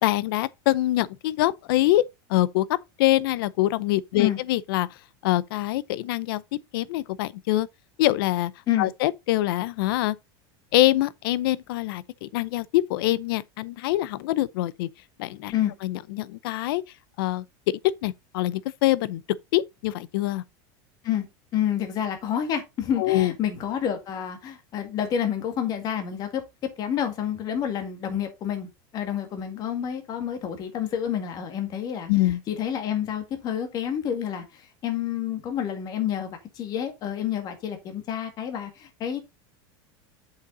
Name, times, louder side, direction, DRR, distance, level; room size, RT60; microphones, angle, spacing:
voice 1, 0.0-2.0 2.3-4.9 5.2-6.4 6.7-7.7 8.0-8.5 8.8-10.2 10.7-14.9 15.2-15.5 15.8-16.8 17.2-17.4 18.0-19.2 19.5-20.4 23.0-23.3 32.1-32.4, left 16 dB, 70° left, 0.6 m, -24 dB
voice 2, 21.5-26.4 26.8-39.2, left 9 dB, 30° left, 1.9 m, -29 dB
7.6 x 5.7 x 3.9 m
supercardioid pair, 160°, 12 cm